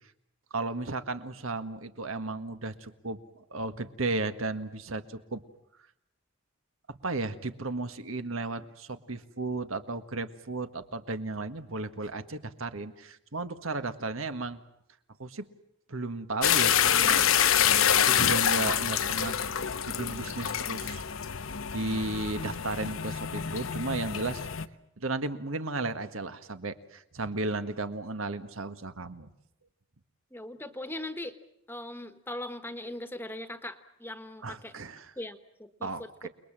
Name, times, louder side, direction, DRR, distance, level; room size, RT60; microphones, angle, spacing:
voice 1, 0.5-5.4 6.9-14.6 15.2-15.4 15.9-17.2 18.0-19.7 20.0-21.0 21.7-24.5 25.0-29.3 34.4-35.1 35.8-36.3, right 2 dB, 85° right, 10 dB, 1.7 m, -34 dB
sound 1, 16.4-24.7, left 9 dB, 85° left, 1.0 m, -26 dB
voice 2, 30.3-31.3 31.7-34.7 35.2-36.3, left 1 dB, 10° left, 9 dB, 1.3 m, -40 dB
29.5 x 21.5 x 7.5 m, 0.77 s
head